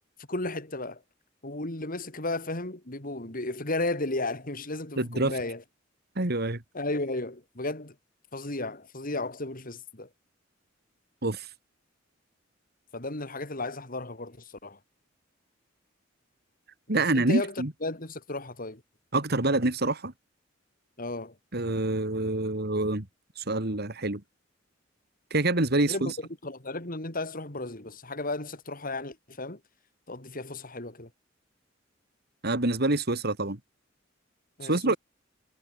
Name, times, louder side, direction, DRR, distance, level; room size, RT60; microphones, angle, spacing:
voice 1, 0.2-1.0 1.4-5.6 6.7-8.0 8.3-10.1 12.9-14.8 16.9-18.8 21.0-21.4 25.9-29.6 30.1-31.1 34.6-35.0, left 2 dB, 45° left, 3.8 m, -34 dB
voice 2, 5.0-5.3 6.2-6.6 11.2-11.5 16.9-17.7 19.1-20.1 21.5-23.1 23.4-24.2 25.3-26.2 32.4-33.6 34.6-35.0, right 2 dB, 55° right, 2.6 m, -26 dB
head